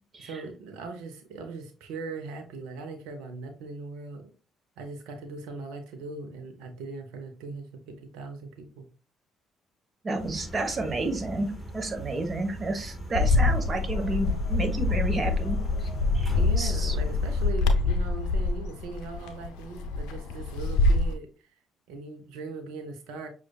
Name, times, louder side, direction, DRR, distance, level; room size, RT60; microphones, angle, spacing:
voice 1, 0.2-4.3 4.8-8.9 16.3-21.3 21.9-23.3, right 4 dB, 75° right, 6 dB, 0.8 m, -40 dB
voice 2, 10.0-17.0, right 2 dB, 40° right, 5 dB, 1.1 m, -31 dB
sound 1, 10.2-17.5, right 1 dB, 5° left, 1.4 m, -41 dB
Bird, 13.1-21.1, left 3 dB, 75° left, 0.5 m, -25 dB
6.1 x 2.5 x 2.3 m, 0.34 s
hypercardioid pair, 50°, 0 cm